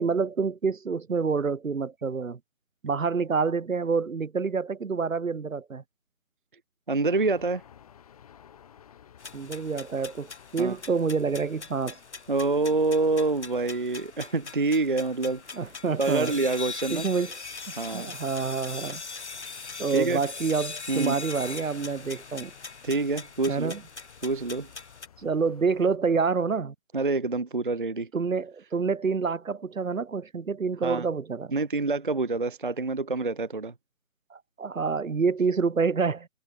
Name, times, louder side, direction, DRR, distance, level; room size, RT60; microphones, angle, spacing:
voice 1, 0.0-2.4 2.8-5.8 9.3-12.0 15.5-16.4 16.9-17.4 17.7-19.0 19.8-22.5 23.5-23.8 25.2-26.7 28.1-31.5 34.3-36.3, right 5 dB, 75° right, 1.2 m, -27 dB
voice 2, 6.9-7.6 10.6-10.8 12.3-15.4 16.0-17.1 17.8-18.1 19.9-20.2 20.9-21.2 22.8-23.7 24.2-24.7 26.9-28.1 30.8-31.0 31.5-33.7, right 3 dB, 40° right, 0.5 m, -26 dB
sound 1, 7.1-26.0, left 9 dB, 25° left, 6.8 m, -55 dB
sound 2, 9.2-25.1, left 4 dB, 55° left, 6.0 m, -41 dB
figure-of-eight pair, 160°, 41 cm